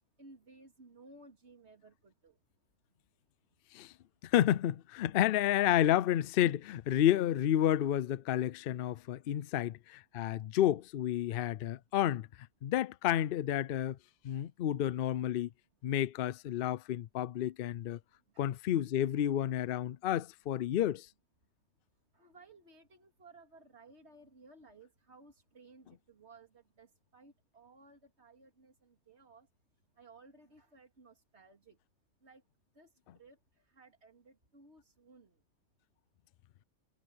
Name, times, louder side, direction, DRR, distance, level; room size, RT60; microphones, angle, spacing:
voice 1, 0.2-2.4 18.3-18.5 22.1-29.5 30.0-31.8 32.2-32.4 32.7-35.4, right 3 dB, 60° right, 3.0 m, -59 dB
voice 2, 4.2-12.3 12.6-14.0 14.2-15.5 15.8-18.0 18.4-21.1, left 11 dB, 60° left, 0.6 m, -30 dB
omnidirectional pair, 1.3 m